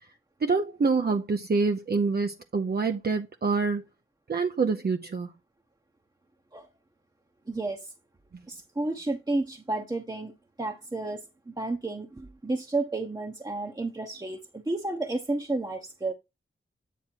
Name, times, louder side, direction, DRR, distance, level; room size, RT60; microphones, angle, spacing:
voice 1, 0.4-3.8 4.3-5.3, right 4 dB, 50° right, 0.7 m, -26 dB
voice 2, 7.5-7.9 8.5-10.3 10.6-16.1, right 2 dB, 20° right, 0.9 m, -31 dB
9.2 x 3.6 x 4.5 m
wide cardioid pair, 85°, 21 cm